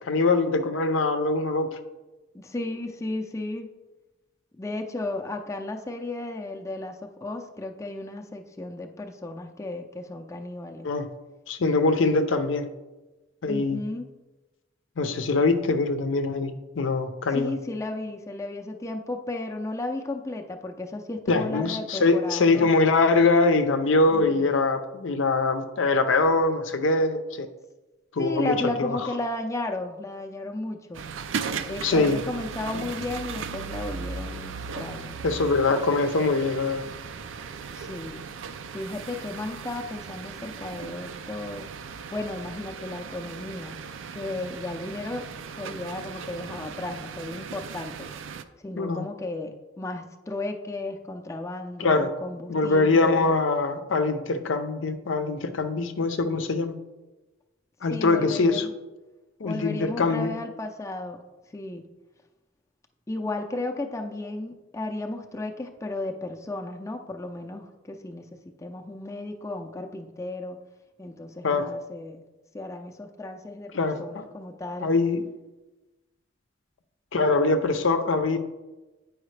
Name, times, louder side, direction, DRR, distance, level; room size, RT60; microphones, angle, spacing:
voice 1, 0.1-1.8 10.8-11.1 11.5-12.7 13.4-13.8 15.0-17.5 21.3-27.5 28.1-29.0 31.8-32.2 32.7-32.9 35.2-36.8 48.8-49.0 51.8-52.1 52.5-56.8 57.8-58.7 59.4-60.3 71.4-71.7 73.7-74.3 74.8-75.2 77.1-78.4, left 3 dB, 85° left, 8 dB, 0.6 m, -23 dB
voice 2, 2.3-3.7 4.5-10.9 13.4-14.1 17.3-22.7 24.1-24.5 28.2-31.0 31.6-35.2 37.7-38.2 38.7-41.7 42.1-43.9 44.1-45.3 45.6-48.1 48.6-53.4 57.9-58.8 59.4-61.2 61.5-61.9 63.1-70.6 71.0-72.2 72.5-73.7 74.0-74.9, left 2 dB, 15° left, 3 dB, 0.4 m, -34 dB
sound 1, 30.9-48.4, right 6 dB, 80° right, 0.4 m, -37 dB
8.9 x 4.8 x 3.2 m, 1.1 s
head